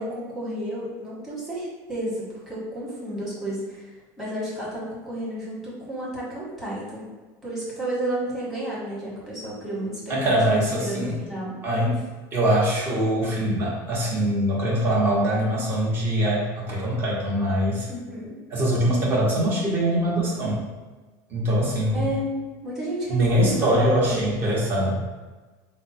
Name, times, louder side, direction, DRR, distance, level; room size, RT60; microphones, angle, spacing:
voice 1, 0.0-3.9 4.2-7.0 7.4-10.1 10.5-11.5 17.9-18.4 21.9-24.3, right 1 dB, ahead, -7 dB, 1.4 m, -31 dB
voice 2, 10.1-11.2 11.6-12.0 12.3-17.9 18.5-20.6 21.3-22.1 23.1-25.0, right 1 dB, 25° right, -5 dB, 1.2 m, -23 dB
5.3 x 2.2 x 4.2 m, 1.3 s
cardioid pair, 175°, 9 cm